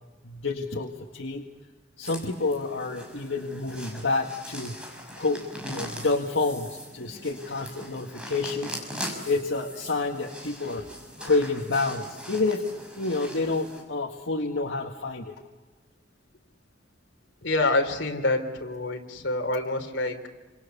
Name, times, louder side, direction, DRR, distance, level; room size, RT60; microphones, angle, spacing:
voice 1, 0.2-1.4 2.0-4.8 5.2-8.8 9.3-10.9 11.2-12.6 12.9-15.4, left 3 dB, 90° left, 0 dB, 1.9 m, -28 dB
sound 1, 2.0-13.8, equal, 5° right, 6.1 m, -41 dB
voice 2, 17.4-20.2, left 2 dB, 70° left, 3 dB, 3.6 m, -26 dB
29.0 x 27.0 x 7.0 m, 1.3 s
head